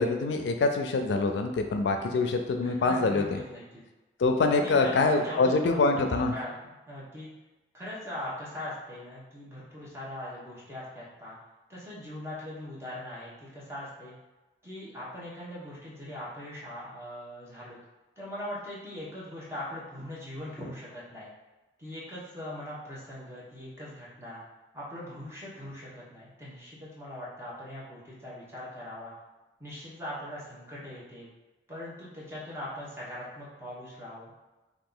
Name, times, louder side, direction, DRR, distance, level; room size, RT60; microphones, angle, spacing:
voice 1, 0.0-3.4 4.2-6.3, left 3 dB, 85° left, 5 dB, 0.4 m, -25 dB
voice 2, 2.6-3.6 4.5-5.8 6.1-7.3 7.7-11.4 11.7-14.1 14.6-17.8 18.2-21.3 21.8-24.4 24.7-29.1 29.6-31.3 31.7-34.5, left 1 dB, 15° right, -8 dB, 0.9 m, -41 dB
2.9 x 2.4 x 3.8 m, 1.1 s
head